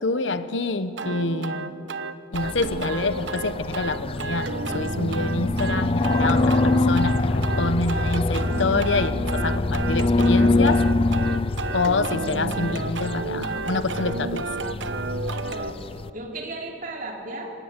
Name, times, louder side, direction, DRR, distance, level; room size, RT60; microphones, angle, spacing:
voice 1, 0.0-1.7 2.3-10.8 11.7-14.5, left 3 dB, 90° left, 12 dB, 1.1 m, -27 dB
sound 1, 1.0-15.7, right 3 dB, 85° right, 1.1 m, -32 dB
sound 2, 2.3-16.1, left 2 dB, 30° left, 0.5 m, -25 dB
voice 2, 15.5-17.5, right 2 dB, 50° right, 1 dB, 3.4 m, -36 dB
26.5 x 16.5 x 9.7 m, 2.6 s
head